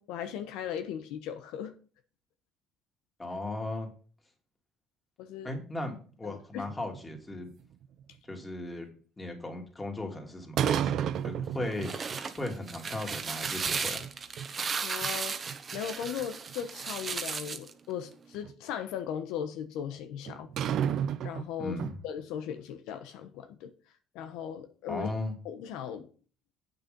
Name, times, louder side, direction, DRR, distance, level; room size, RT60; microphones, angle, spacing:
voice 1, 0.0-1.7 5.2-5.5 6.2-6.7 14.8-15.3 15.7-20.5 21.2-21.8 22.0-23.7 24.1-25.1 25.4-26.1, left 9 dB, 80° left, 1.1 m, -38 dB
voice 2, 3.2-3.9 5.4-7.5 8.3-8.9 9.2-11.9 12.4-14.0 21.6-22.0 24.9-25.3, left 2 dB, 15° left, 2.9 m, -37 dB
sound 1, 6.7-8.0 10.6-12.2 12.5-12.6 13.1-14.1 14.4-14.5 15.0-15.1 15.5-16.9 18.4-18.5 20.3-22.0, right 9 dB, 60° right, 0.6 m, -32 dB
sound 2, 11.6-17.7, right 5 dB, 35° right, 1.2 m, -35 dB
8.6 x 6.8 x 5.3 m
cardioid pair, 105°, 0 cm